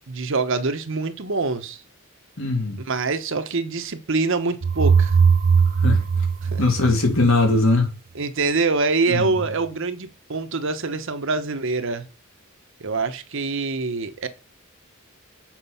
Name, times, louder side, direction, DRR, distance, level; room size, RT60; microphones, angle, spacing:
voice 1, 0.1-1.8 2.8-5.1 6.4-6.7 8.1-12.0 12.8-14.3, right 3 dB, 65° right, 1.0 m, -25 dB
voice 2, 2.4-2.8 5.8-6.0 6.6-7.9 9.1-9.3, left 2 dB, 70° left, 2.7 m, -20 dB
sound 1, 4.6-7.5, right 6 dB, 45° right, 0.4 m, -19 dB
7.4 x 5.4 x 5.5 m
head